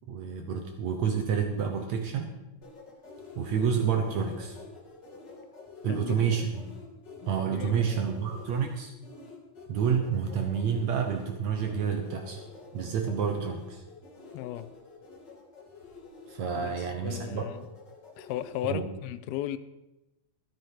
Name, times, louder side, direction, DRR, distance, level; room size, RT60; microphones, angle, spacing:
voice 1, 0.1-2.3 3.4-4.6 5.8-6.7 7.3-8.9 9.7-12.4 12.7-13.8 16.3-17.5 18.6-18.8, right 7 dB, 65° right, 1.9 m, -29 dB
sound 1, 2.6-18.7, left 4 dB, 35° left, 2.1 m, -48 dB
voice 2, 5.9-6.4 7.2-8.2 14.3-14.7 16.6-17.7 18.2-19.6, left 13 dB, 90° left, 2.5 m, -36 dB
12.5 x 11.5 x 4.7 m
omnidirectional pair, 4.2 m